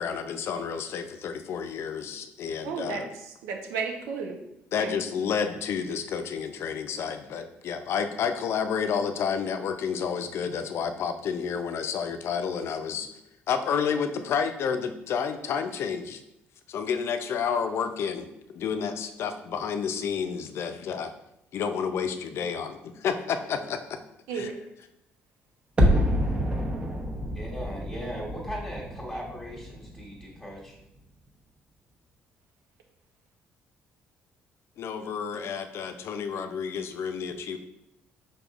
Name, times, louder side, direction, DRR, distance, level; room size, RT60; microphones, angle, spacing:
voice 1, 0.0-3.1 4.7-13.1 13.5-16.2 16.7-18.3 18.5-21.1 21.5-24.0 24.3-24.5 34.8-37.6, left 6 dB, 65° left, 8 dB, 0.5 m, -30 dB
voice 2, 2.6-4.4 4.8-4.9 24.3-24.5, right 5 dB, 90° right, 3 dB, 0.7 m, -33 dB
sound 1, 25.8-30.7 31.0-31.1, equal, 25° right, 0.9 m, -27 dB
voice 3, 27.3-30.8, equal, 10° left, -6 dB, 1.2 m, -38 dB
5.2 x 4.1 x 2.4 m, 0.84 s
cardioid pair, 90°, 5 cm